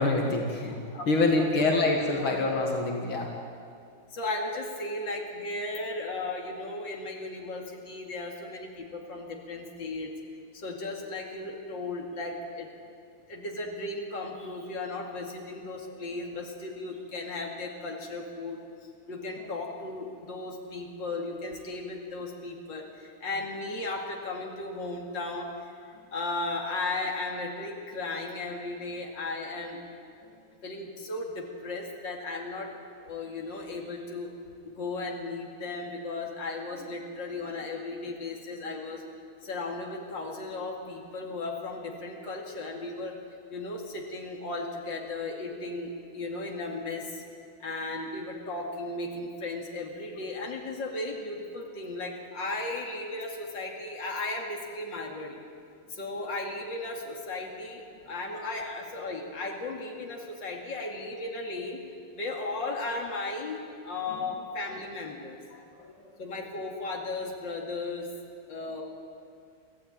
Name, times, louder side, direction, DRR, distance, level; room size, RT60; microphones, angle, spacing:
voice 1, 0.0-3.3 30.2-30.3 64.1-64.2 65.5-66.1, left 2 dB, 80° left, 1 dB, 2.9 m, -27 dB
voice 2, 0.9-1.6 2.1-2.2 4.1-10.1 10.5-12.7 13.3-18.6 19.1-29.8 30.6-32.7 33.0-34.3 34.6-39.0 39.4-43.1 43.5-47.2 47.6-55.4 55.9-61.8 62.1-65.4 66.2-68.1 68.5-68.8, left 2 dB, 60° left, 0 dB, 3.1 m, -35 dB
24.5 x 15.5 x 9.1 m, 2.3 s
omnidirectional pair, 2.2 m